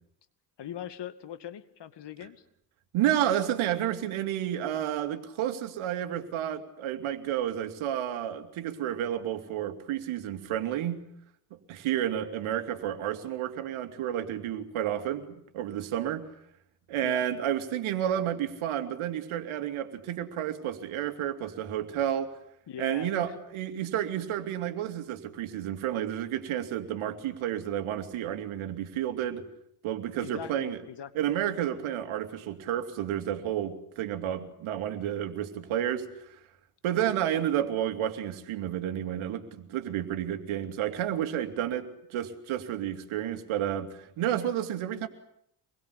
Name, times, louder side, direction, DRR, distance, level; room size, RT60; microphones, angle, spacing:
voice 1, 0.6-2.4 17.0-17.2 22.7-23.3 30.2-31.3, left 10 dB, 55° left, 12 dB, 2.4 m, -41 dB
voice 2, 2.9-11.0 11.5-16.3 16.9-22.4 22.8-29.4 29.8-30.8 31.1-36.4 36.8-45.1, right 11 dB, 70° right, 8 dB, 2.8 m, -31 dB
26.5 x 21.5 x 8.4 m, 0.73 s
hypercardioid pair, 55°, 50 cm